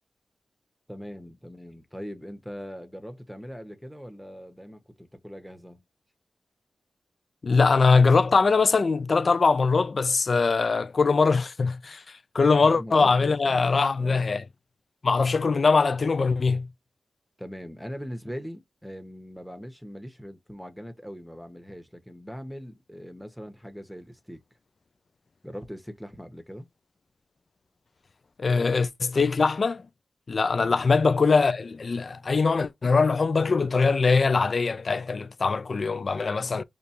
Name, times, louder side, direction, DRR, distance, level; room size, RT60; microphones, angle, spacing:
voice 1, 0.9-5.8 12.4-14.3 17.4-24.4 25.4-26.7 30.6-30.9, equal, ahead, 1.1 m, -41 dB
voice 2, 7.4-12.0 12.3-14.4 15.0-16.7 28.4-29.8 30.3-36.6, left 4 dB, 60° left, 0.4 m, -22 dB
5.1 x 2.5 x 2.8 m
cardioid pair, 45°, 0 cm